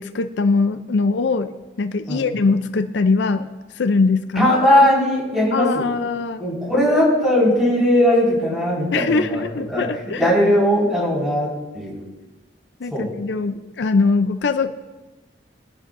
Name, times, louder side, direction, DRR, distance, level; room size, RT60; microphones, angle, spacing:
voice 1, 0.0-3.5 3.7-4.5 5.5-6.4 8.9-10.2 12.8-14.7, left 4 dB, 70° left, 9 dB, 0.5 m, -21 dB
voice 2, 4.3-5.8 6.4-9.9 10.2-11.5 11.7-12.0 12.9-13.1, left 1 dB, 5° right, -7 dB, 5.0 m, -18 dB
22.0 x 10.0 x 2.6 m, 1.2 s
head